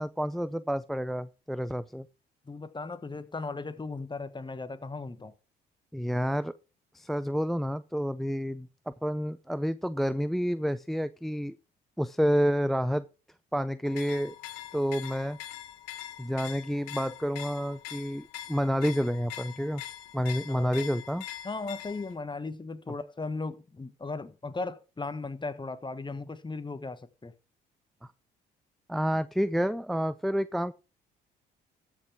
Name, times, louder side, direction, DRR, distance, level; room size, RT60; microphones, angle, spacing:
voice 1, 0.0-2.1 5.9-6.5 6.9-11.6 12.0-13.1 13.5-14.4 14.7-15.4 16.2-19.8 20.1-21.2 28.9-30.7, equal, ahead, 0.5 m, -29 dB
voice 2, 2.5-5.3 20.5-20.7 21.4-27.3, left 3 dB, 20° left, 1.4 m, -37 dB
sound 1, 13.8-22.2, left 12 dB, 85° left, 1.0 m, -43 dB
13.5 x 5.9 x 4.7 m
hypercardioid pair, 60°, 21 cm